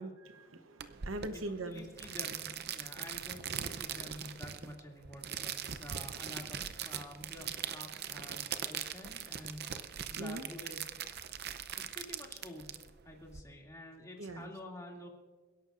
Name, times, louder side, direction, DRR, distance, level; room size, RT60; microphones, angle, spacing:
voice 1, 0.0-1.9 2.8-2.9 10.2-10.4 11.3-11.4 14.2-14.5, right 2 dB, 80° right, 8 dB, 1.0 m, -42 dB
sound 1, 0.8-13.4, right 9 dB, 55° right, 0.7 m, -41 dB
voice 2, 1.3-10.9 11.8-15.1, left 1 dB, 15° left, -1 dB, 2.5 m, -49 dB
28.5 x 11.5 x 2.6 m, 1.3 s
head